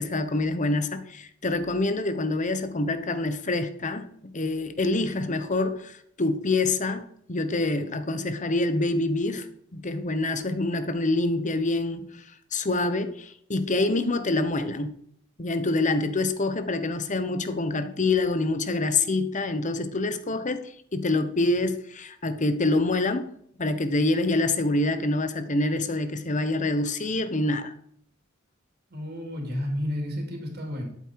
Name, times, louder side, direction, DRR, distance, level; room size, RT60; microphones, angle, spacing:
voice 1, 0.0-9.5 9.7-12.2 12.5-14.9 15.4-23.3 23.6-27.7, left 2 dB, 35° left, 1.1 m, -26 dB
voice 2, 28.9-30.8, left 1 dB, 50° right, 3.3 m, -31 dB
12.0 x 8.4 x 4.8 m
head